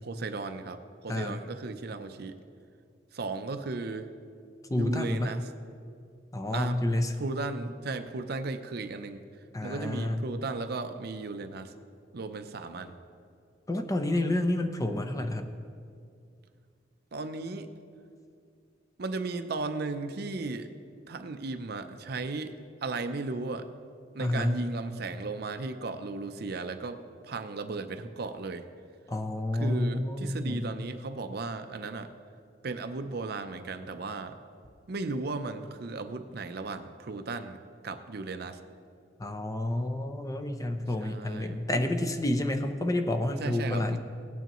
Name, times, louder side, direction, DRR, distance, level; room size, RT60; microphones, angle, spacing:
voice 1, 0.0-2.4 3.1-4.1 4.7-5.5 6.5-6.8 7.2-11.7 12.1-12.9 17.1-17.7 19.0-20.7 21.1-22.5 22.8-23.7 24.1-28.7 29.5-32.1 32.6-34.4 34.9-38.6 41.0-41.7 43.4-44.0, right 3 dB, 60° right, 8 dB, 0.6 m, -36 dB
voice 2, 1.1-1.4 4.7-5.3 6.3-7.2 9.5-10.3 13.7-15.6 24.2-24.6 29.1-30.7 39.2-44.0, left 1 dB, 20° left, 6 dB, 0.6 m, -29 dB
17.5 x 9.2 x 3.0 m, 2.3 s
head